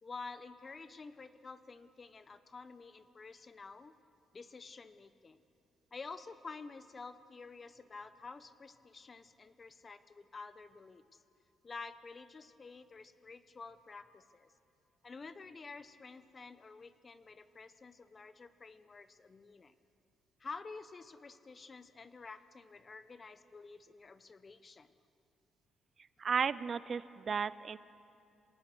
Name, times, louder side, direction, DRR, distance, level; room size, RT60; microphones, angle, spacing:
voice 1, 0.0-3.9 4.3-5.4 5.9-11.2 11.6-14.5 15.0-19.7 20.4-24.9, left 4 dB, 35° left, 12 dB, 1.0 m, -50 dB
voice 2, 26.2-27.8, right 6 dB, 45° right, 17 dB, 0.5 m, -34 dB
26.0 x 18.0 x 6.8 m, 2.6 s
cardioid pair, 90°, 0 cm